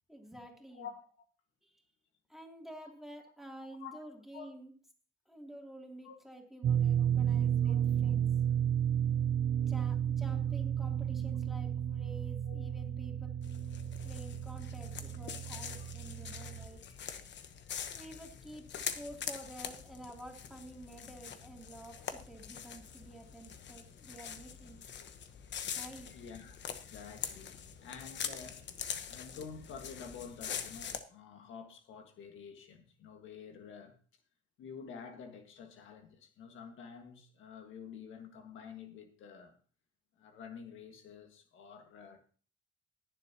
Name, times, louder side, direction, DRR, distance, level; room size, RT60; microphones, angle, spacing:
voice 1, 0.1-0.9 1.6-1.7 2.3-4.7 5.3-8.3 9.6-13.3 14.0-16.8 17.9-24.8 25.8-26.1, right 1 dB, ahead, 2.8 m, -50 dB
voice 2, 0.7-1.1 2.8-2.9 3.8-4.0 4.3-4.5 6.0-6.2 7.6-7.8 12.4-12.8 26.1-28.7 29.1-33.9 34.6-39.6 40.2-42.2, left 6 dB, 80° left, 1.7 m, -49 dB
sound 1, 6.6-16.7, right 9 dB, 60° right, 0.6 m, -32 dB
sound 2, 13.4-31.0, left 8 dB, 65° left, 1.1 m, -44 dB
20.0 x 7.4 x 2.9 m
cardioid pair, 90°, 20 cm